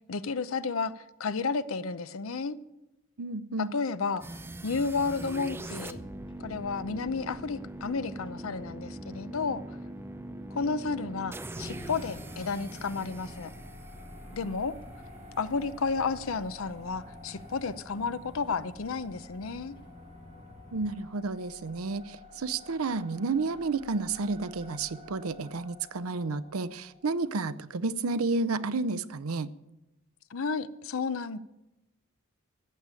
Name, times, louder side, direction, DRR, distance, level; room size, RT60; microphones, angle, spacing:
voice 1, 0.1-2.6 3.6-4.3 4.6-6.0 6.4-9.8 10.5-13.5 14.3-14.8 15.4-19.7 30.3-31.4, left 4 dB, 70° left, 14 dB, 0.7 m, -32 dB
voice 2, 3.2-3.7 20.7-29.5, right 3 dB, 90° right, 15 dB, 0.7 m, -31 dB
sound 1, 4.2-15.2, right 1 dB, 10° right, 0.6 m, -42 dB
sound 2, 5.5-20.9, left 1 dB, 25° left, 1.2 m, -50 dB
sound 3, 11.6-27.7, left 1 dB, 35° right, 1.8 m, -50 dB
14.5 x 8.4 x 8.9 m, 0.97 s
head